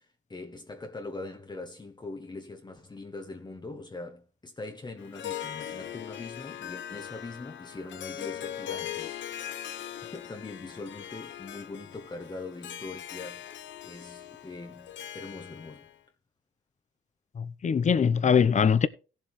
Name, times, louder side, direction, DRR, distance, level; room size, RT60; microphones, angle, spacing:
voice 1, 0.0-9.2 10.0-15.9, left 3 dB, 20° left, 1.1 m, -42 dB
Harp, 5.0-15.9, left 11 dB, 70° left, 0.8 m, -40 dB
voice 2, 17.4-18.9, left 7 dB, 35° left, 0.8 m, -22 dB
16.5 x 7.4 x 3.2 m
cardioid pair, 90°, 20 cm